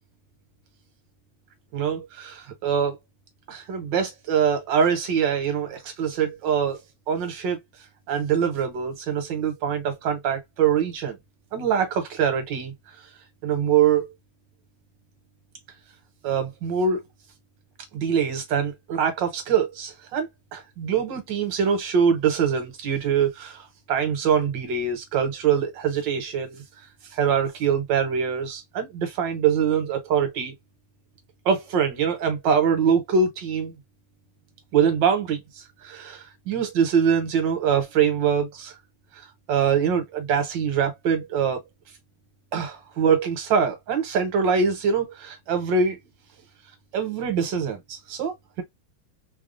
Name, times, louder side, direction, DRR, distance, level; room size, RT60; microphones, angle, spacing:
voice 1, 1.7-3.0 3.5-6.8 7.1-7.6 8.1-11.2 11.5-12.7 13.4-14.1 16.2-17.0 17.9-23.6 23.9-26.6 27.1-30.5 31.4-33.7 34.7-38.7 39.5-41.6 42.5-46.0 46.9-48.6, right 7 dB, 65° right, 1.5 m, -24 dB
3.6 x 2.3 x 2.4 m
omnidirectional pair, 2.4 m